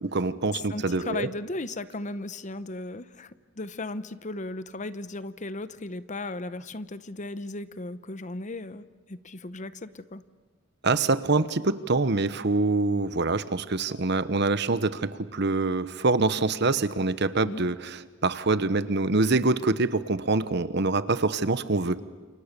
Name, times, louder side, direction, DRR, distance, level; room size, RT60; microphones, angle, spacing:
voice 1, 0.0-1.3 10.8-22.0, right 3 dB, 60° right, 14 dB, 1.1 m, -25 dB
voice 2, 0.5-10.2 17.4-17.6, left 2 dB, 40° left, 14 dB, 0.9 m, -36 dB
30.0 x 28.0 x 6.8 m, 1.5 s
head